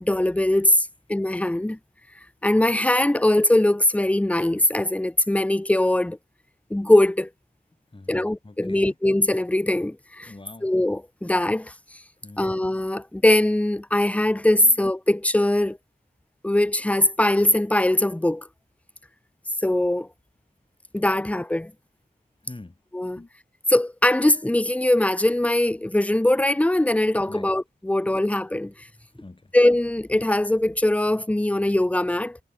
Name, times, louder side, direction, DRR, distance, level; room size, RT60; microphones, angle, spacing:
voice 1, 0.0-1.8 2.4-6.2 6.7-7.3 8.1-10.3 10.6-12.0 12.4-15.8 16.4-18.5 19.6-20.1 20.9-21.7 22.9-23.2 23.7-28.9 29.5-32.4, left 1 dB, 5° left, 0.6 m, -21 dB
voice 2, 7.9-8.9 10.3-10.7 12.2-12.5 14.6-14.8 21.1-21.2 22.4-23.3 25.8-25.9 27.3-27.5 29.2-29.5, left 2 dB, 30° left, 4.3 m, -45 dB
wide cardioid pair, 80°, 18 cm